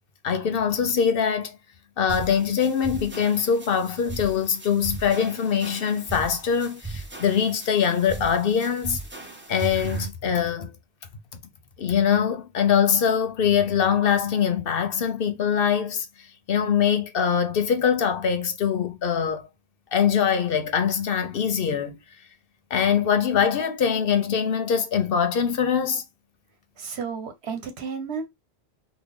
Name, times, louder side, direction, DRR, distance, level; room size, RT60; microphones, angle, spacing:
voice 1, 0.2-1.6 2.0-9.0 9.5-10.7 11.8-16.1 16.5-19.4 19.9-22.0 22.7-26.0, left 7 dB, 65° left, 0.9 m, -23 dB
sound 1, 2.1-10.1, right 3 dB, 15° right, 0.6 m, -37 dB
voice 2, 26.8-28.3, right 5 dB, 80° right, 1.2 m, -32 dB
3.5 x 2.3 x 3.5 m
omnidirectional pair, 1.1 m